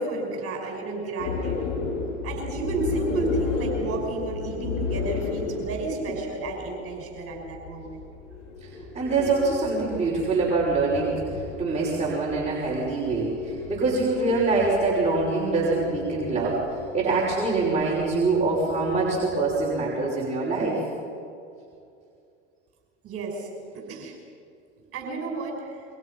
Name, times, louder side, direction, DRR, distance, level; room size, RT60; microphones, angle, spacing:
voice 1, 0.0-1.6 2.2-8.0 23.0-24.2 24.9-25.8, right 3 dB, 40° right, 1 dB, 5.5 m, -32 dB
sound 1, 1.2-19.9, left 4 dB, 60° left, 5.3 m, -34 dB
voice 2, 8.9-11.2 11.6-16.6 16.9-20.8, right 3 dB, 20° right, -5 dB, 6.2 m, -24 dB
29.0 x 23.5 x 5.7 m, 2.4 s
hypercardioid pair, 85°, 36 cm